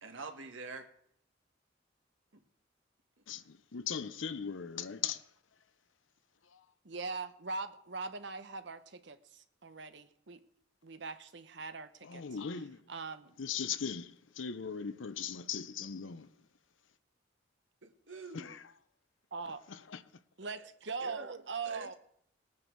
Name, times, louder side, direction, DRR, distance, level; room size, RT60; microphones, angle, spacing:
voice 1, 0.0-0.9 17.8-18.5 21.0-21.9, right 3 dB, 85° right, 1.6 m, -46 dB
voice 2, 3.3-5.2 6.5-6.6 12.0-12.8 13.4-16.3 18.3-18.6 19.7-20.0, left 7 dB, 85° left, 0.7 m, -39 dB
voice 3, 6.8-10.4 10.8-12.2 12.9-13.3 19.3-19.6 20.4-21.9, right 4 dB, 65° right, 1.0 m, -41 dB
19.5 x 9.7 x 4.7 m
head